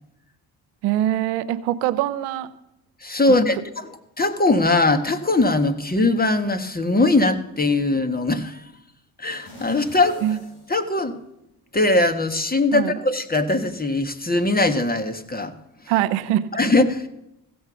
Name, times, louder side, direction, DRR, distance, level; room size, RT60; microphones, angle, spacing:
voice 1, 0.8-2.5 10.2-10.4 12.7-12.9 15.9-16.5, right 12 dB, 90° right, 14 dB, 0.7 m, -23 dB
voice 2, 3.0-8.6 9.2-10.2 10.7-11.2 11.7-15.5 16.6-17.1, left 2 dB, 20° left, 9 dB, 1.5 m, -20 dB
sound 1, 9.4-11.6 12.0-12.1, left 1 dB, 70° left, 4.2 m, -44 dB
16.0 x 7.2 x 6.2 m, 0.86 s
supercardioid pair, 50°, 48 cm